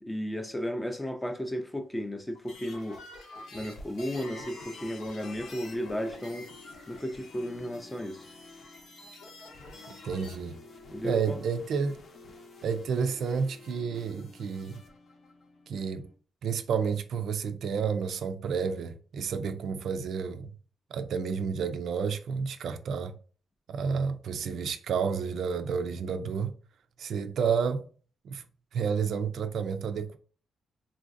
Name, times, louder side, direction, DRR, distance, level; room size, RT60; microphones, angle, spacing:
voice 1, 0.0-3.0 3.5-6.5 6.9-8.3 10.9-11.4, equal, 10° left, 0.4 m, -34 dB
sound 1, 2.3-10.4, left 2 dB, 90° left, 0.9 m, -48 dB
sound 2, 3.3-16.1, left 3 dB, 55° left, 0.7 m, -51 dB
voice 2, 10.0-10.6 11.0-12.0 12.6-14.8 15.7-16.1 16.4-20.5 20.9-23.1 23.7-26.5 27.0-27.9 28.2-28.4 28.7-30.2, right 6 dB, 70° right, 0.4 m, -30 dB
3.8 x 2.5 x 2.5 m
wide cardioid pair, 150°, 0 cm